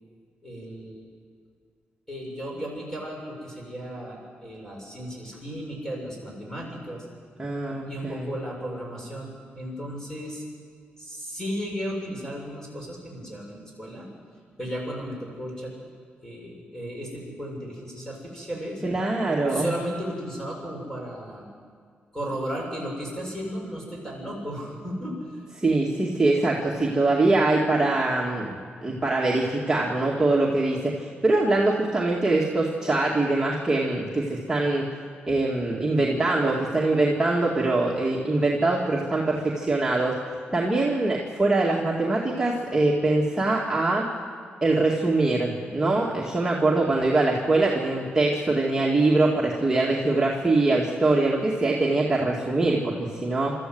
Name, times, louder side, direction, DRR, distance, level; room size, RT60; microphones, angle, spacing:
voice 1, 0.4-1.1 2.1-7.0 7.7-10.4 11.0-14.1 14.6-15.7 16.2-18.8 19.5-21.4 22.1-25.5, equal, 15° left, -2 dB, 7.4 m, -35 dB
voice 2, 7.4-8.3 18.8-19.7 25.6-34.8 35.3-40.1 40.5-44.1 44.6-53.5, right 2 dB, 15° right, -4 dB, 2.3 m, -23 dB
24.0 x 13.5 x 8.0 m, 2.1 s
cardioid pair, 105°, 4 cm